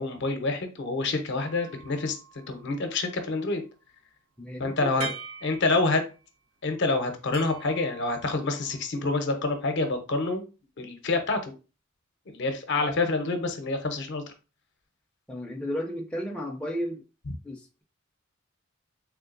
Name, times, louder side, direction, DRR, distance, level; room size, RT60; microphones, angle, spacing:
voice 1, 0.0-2.2 2.5-3.6 4.6-5.1 5.4-6.0 6.6-10.4 10.8-11.5 12.3-14.2, left 3 dB, 60° left, 6 dB, 0.6 m, -27 dB
sound 1, 1.4-3.0 5.0-6.3 7.3-8.9, right 5 dB, 90° right, 0.7 m, -43 dB
voice 2, 4.4-5.2 15.3-17.0 17.4-17.8, equal, 5° left, 0 dB, 0.4 m, -34 dB
3.5 x 3.2 x 2.4 m, 0.32 s
head